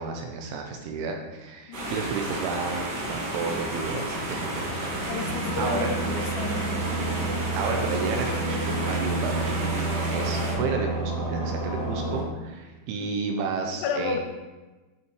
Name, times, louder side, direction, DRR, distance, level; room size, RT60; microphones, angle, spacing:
voice 1, 0.0-4.9 5.2-5.9 7.6-14.2, right 4 dB, 85° right, 2 dB, 3.0 m, -32 dB
sound 1, 1.7-10.5, right 1 dB, 60° right, 2.8 m, -32 dB
sound 2, 3.7-12.2, right 2 dB, 40° right, 3.5 m, -30 dB
voice 2, 5.1-6.8 12.9-13.1 13.8-14.2, left 5 dB, 80° left, 3 dB, 3.0 m, -32 dB
9.3 x 5.7 x 3.1 m, 1.2 s
omnidirectional pair, 5.6 m